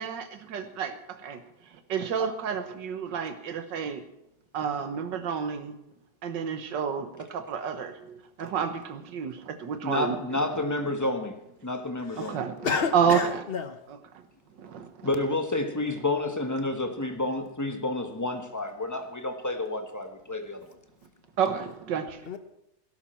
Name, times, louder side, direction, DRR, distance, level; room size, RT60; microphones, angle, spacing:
voice 1, 0.0-4.0 4.5-5.8 6.2-10.6 12.2-12.7 12.9-13.4 13.9-14.3 14.5-15.1 21.4-22.2, right 7 dB, 75° right, 8 dB, 1.8 m, -30 dB
voice 2, 9.8-12.4 15.0-20.7, left 2 dB, 10° left, 5 dB, 1.0 m, -30 dB
voice 3, 12.6-13.8 22.3-22.4, left 5 dB, 40° left, 9 dB, 1.0 m, -30 dB
18.0 x 11.5 x 4.5 m, 0.83 s
omnidirectional pair, 2.0 m